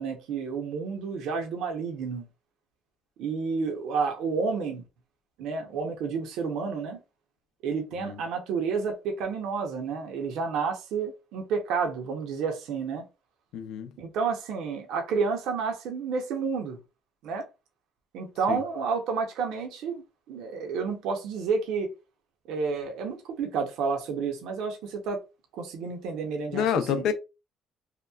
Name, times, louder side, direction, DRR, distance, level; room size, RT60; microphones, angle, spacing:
voice 1, 0.0-2.3 3.2-4.8 5.4-7.0 7.6-13.1 14.0-16.8 17.2-17.5 18.1-20.0 20.3-21.9 22.5-25.2 25.5-27.0, right 5 dB, 80° right, 0.7 m, -30 dB
voice 2, 13.5-13.9 18.5-18.6 26.5-27.1, left 8 dB, 75° left, 0.5 m, -27 dB
2.9 x 2.2 x 2.3 m
cardioid pair, 90°, 0 cm